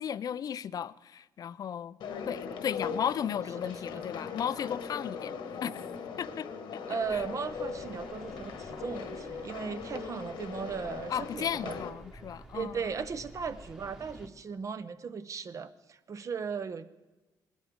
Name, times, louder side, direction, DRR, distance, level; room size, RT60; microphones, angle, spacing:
voice 1, 0.0-2.0 2.3-5.4 5.6-5.9 6.2-6.5 7.1-7.2 11.1-12.9, left 9 dB, 50° left, 0.4 m, -35 dB
sound 1, 2.0-11.9, left 6 dB, 75° left, 1.3 m, -40 dB
voice 2, 6.9-11.8 12.5-16.9, right 6 dB, 40° right, 0.7 m, -37 dB
sound 2, 7.0-14.3, right 1 dB, 10° right, 1.2 m, -51 dB
20.0 x 11.5 x 3.7 m
cardioid pair, 100°, 8 cm